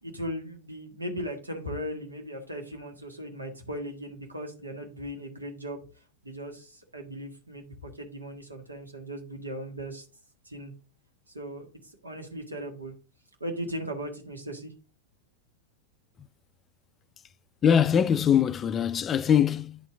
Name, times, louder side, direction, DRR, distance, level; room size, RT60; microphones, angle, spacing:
voice 1, 0.0-5.8 6.2-10.0 10.4-10.7 11.3-12.9 13.4-14.7, equal, 80° right, 1.7 m, -38 dB
voice 2, 17.6-19.9, left 8 dB, 25° left, 0.3 m, -22 dB
10.0 x 4.3 x 3.6 m
figure-of-eight pair, 90°, 0 cm